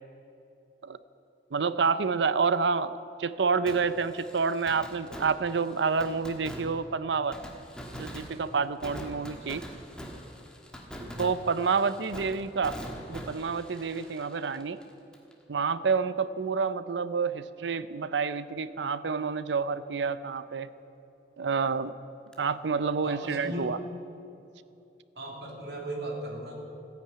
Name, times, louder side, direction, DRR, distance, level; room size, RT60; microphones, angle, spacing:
voice 1, 1.5-2.9 3.2-7.4 7.9-9.6 11.2-12.8 13.1-14.8 15.5-20.7 21.4-21.9 22.4-23.8, right 5 dB, 90° right, 14 dB, 0.6 m, -28 dB
Fireworks, 3.7-15.3 15.6-15.7 22.3-22.4, equal, 5° left, 1.4 m, -44 dB
voice 2, 11.0-11.3 23.0-23.8 25.1-26.6, right 1 dB, 70° right, -1 dB, 2.9 m, -37 dB
14.5 x 10.5 x 8.6 m, 2.8 s
head